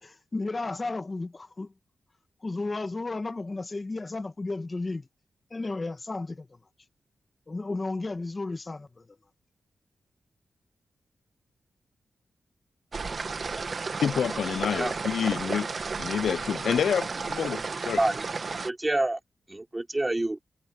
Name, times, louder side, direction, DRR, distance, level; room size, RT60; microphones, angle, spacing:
voice 1, 0.0-1.7 2.4-5.1 5.5-6.6 7.5-9.1, left 3 dB, 30° left, 1.6 m, -33 dB
sound 1, 12.9-18.7, right 4 dB, 50° right, 1.7 m, -33 dB
voice 2, 14.0-15.7 16.0-18.0, left 8 dB, 90° left, 0.4 m, -28 dB
voice 3, 18.0-19.2 19.5-20.4, right 2 dB, 20° right, 3.4 m, -28 dB
wide cardioid pair, 95°, 0 cm